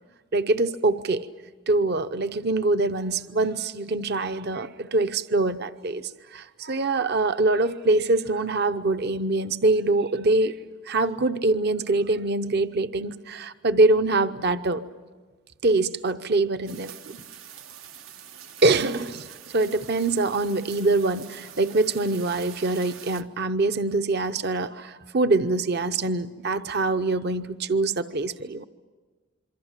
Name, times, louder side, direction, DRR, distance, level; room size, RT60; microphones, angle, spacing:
voice 1, 0.3-1.3 1.7-10.6 10.9-14.8 15.6-17.2 18.6-28.6, right 2 dB, 55° right, 11 dB, 0.8 m, -24 dB
sound 1, 16.7-23.2, right 8 dB, 85° right, 1.1 m, -45 dB
27.0 x 24.5 x 7.4 m, 1.3 s
head